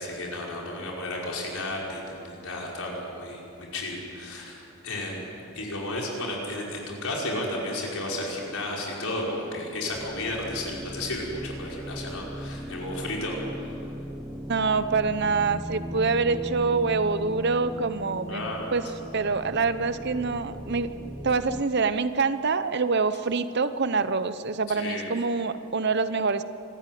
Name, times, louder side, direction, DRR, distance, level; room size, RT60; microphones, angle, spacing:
voice 1, 0.0-13.7 18.3-18.7 24.7-25.1, left 1 dB, 75° left, -2 dB, 5.3 m, -33 dB
sound 1, 9.9-21.6, equal, 10° right, 0.7 m, -38 dB
voice 2, 14.5-18.9 19.1-20.9 21.2-26.4, right 4 dB, 50° right, 12 dB, 0.7 m, -25 dB
25.5 x 14.0 x 9.3 m, 2.8 s
head